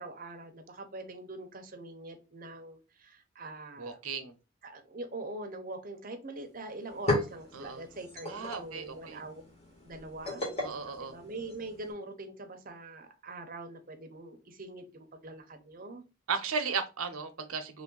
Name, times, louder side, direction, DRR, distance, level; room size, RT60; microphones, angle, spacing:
voice 1, 0.0-4.0 4.6-9.4 9.8-10.4 11.0-16.0, right 2 dB, 40° right, 6 dB, 0.7 m, -43 dB
voice 2, 3.8-4.3 7.5-7.8 8.3-9.2 10.6-11.1 16.3-17.8, right 5 dB, 90° right, 7 dB, 0.7 m, -35 dB
sound 1, 6.4-6.5 6.7-11.9, left 1 dB, 30° left, 1.4 m, -36 dB
3.2 x 2.6 x 3.8 m, 0.31 s
head